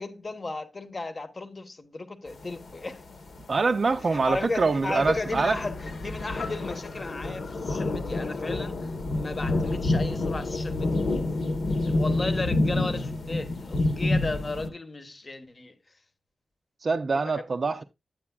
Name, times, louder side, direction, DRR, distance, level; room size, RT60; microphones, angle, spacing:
voice 1, 0.0-3.0 4.1-11.0 11.8-15.7 17.3-17.4, left 3 dB, 35° left, 1.0 m, -34 dB
sound 1, 2.3-14.7, left 2 dB, 60° left, 1.1 m, -29 dB
voice 2, 3.5-5.6 16.8-17.8, right 4 dB, 45° right, 0.4 m, -25 dB
10.0 x 8.6 x 2.3 m
wide cardioid pair, 135°, 0 cm